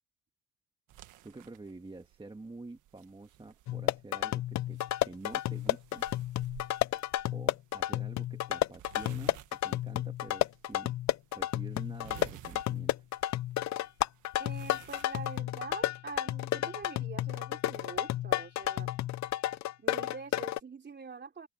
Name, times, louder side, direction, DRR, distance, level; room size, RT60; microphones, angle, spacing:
sound 1, 0.9-15.4, right 14 dB, 85° right, 1.6 m, -56 dB
voice 1, 1.2-6.1 7.3-11.0 11.3-13.0, right 2 dB, 15° right, 1.7 m, -48 dB
sound 2, 3.7-20.6, left 14 dB, 65° left, 0.6 m, -32 dB
voice 2, 14.4-18.9 19.8-21.5, right 5 dB, 35° right, 3.4 m, -45 dB
cardioid pair, 90°, 30 cm